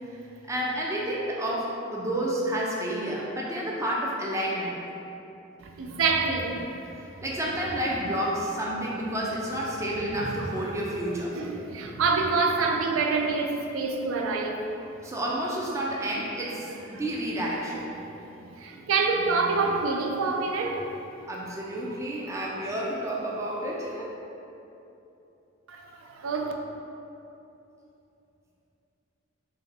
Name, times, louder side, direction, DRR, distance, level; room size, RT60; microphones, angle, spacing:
voice 1, 0.5-4.8 7.0-11.4 15.0-18.0 21.3-24.1, right 1 dB, 15° right, -4 dB, 0.4 m, -30 dB
voice 2, 5.6-6.8 11.3-14.6 18.4-21.0 25.7-26.5, right 4 dB, 80° right, 2 dB, 0.4 m, -27 dB
3.3 x 2.6 x 3.9 m, 2.9 s
head